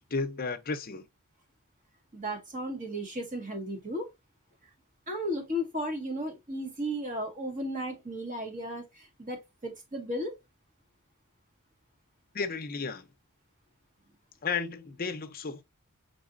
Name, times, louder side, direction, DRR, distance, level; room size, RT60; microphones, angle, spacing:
voice 1, 0.1-1.1 12.3-13.1 14.4-15.6, left 4 dB, 40° left, 0.7 m, -33 dB
voice 2, 2.1-4.1 5.1-10.3, equal, 35° right, 1.6 m, -35 dB
4.8 x 4.0 x 2.5 m
head